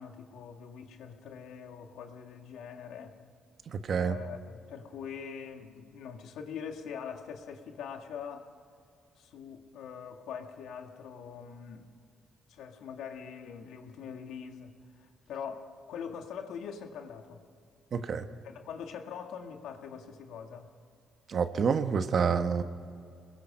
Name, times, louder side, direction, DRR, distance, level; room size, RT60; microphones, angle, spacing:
voice 1, 0.0-3.2 3.9-8.5 9.2-11.9 12.5-17.4 18.4-20.7, left 7 dB, 85° left, 1.7 m, -43 dB
voice 2, 3.7-4.2 17.9-18.3 21.3-22.6, right 6 dB, 55° right, 1.2 m, -28 dB
26.5 x 21.0 x 5.5 m
cardioid pair, 90°, 0 cm